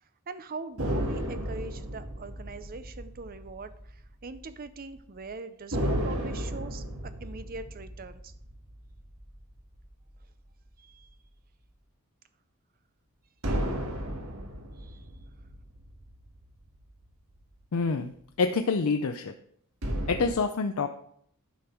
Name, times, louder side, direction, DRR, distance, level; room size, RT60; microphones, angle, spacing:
voice 1, 0.3-8.3 10.8-11.1 14.8-15.1, right 3 dB, 40° right, 12 dB, 0.6 m, -42 dB
sound 1, 0.8-4.5 4.8-4.9 5.7-10.3 13.4-17.0 19.8-20.3, equal, 65° right, 1.7 m, -34 dB
voice 2, 17.7-19.3 20.1-20.9, left 4 dB, 70° left, 7 dB, 0.5 m, -27 dB
10.0 x 5.3 x 4.5 m, 0.66 s
head